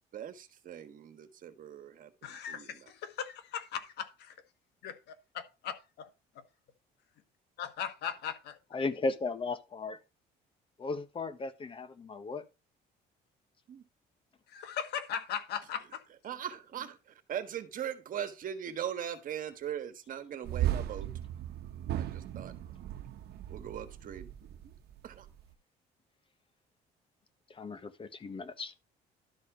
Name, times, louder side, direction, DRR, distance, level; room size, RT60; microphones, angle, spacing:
voice 1, 0.1-2.9 13.7-13.9 16.2-21.1 22.0-22.5 23.5-24.3 24.6-24.7 25.0-25.3, right 9 dB, 55° right, 1.5 m, -40 dB
voice 2, 2.2-4.3 4.8-6.1 6.3-6.4 7.6-8.6 14.5-16.0, left 8 dB, 75° left, 1.5 m, -39 dB
voice 3, 8.7-10.0 10.8-12.4 27.5-28.7, left 3 dB, 30° left, 1.2 m, -36 dB
sound 1, 20.4-25.4, right 12 dB, 70° right, 1.0 m, -36 dB
12.0 x 4.3 x 5.0 m
cardioid pair, 110°, 17 cm